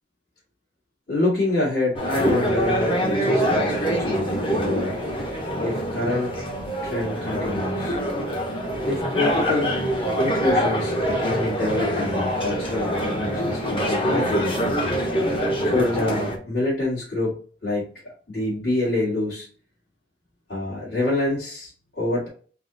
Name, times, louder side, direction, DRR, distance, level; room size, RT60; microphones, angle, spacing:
voice 1, 1.1-5.2 5.6-6.4 6.8-8.0 8.8-9.7 10.2-14.6 15.6-19.5 20.5-22.3, left 2 dB, 55° left, -9 dB, 2.0 m, -26 dB
sound 1, 1.9-16.4, equal, 30° left, 1.0 m, -25 dB
3.9 x 2.9 x 4.0 m, 0.41 s
head